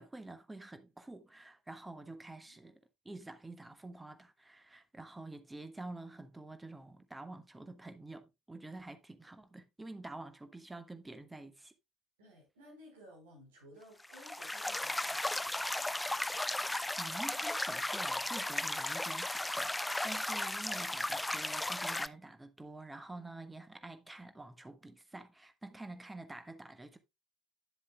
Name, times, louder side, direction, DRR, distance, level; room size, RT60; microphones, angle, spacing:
voice 1, 0.0-11.7 17.0-27.0, right 2 dB, 10° right, 1.3 m, -48 dB
voice 2, 12.2-15.7, equal, 75° right, 4.5 m, -57 dB
sound 1, 14.0-22.1, left 1 dB, 10° left, 0.5 m, -35 dB
10.5 x 7.4 x 2.3 m
figure-of-eight pair, 60°, 0 cm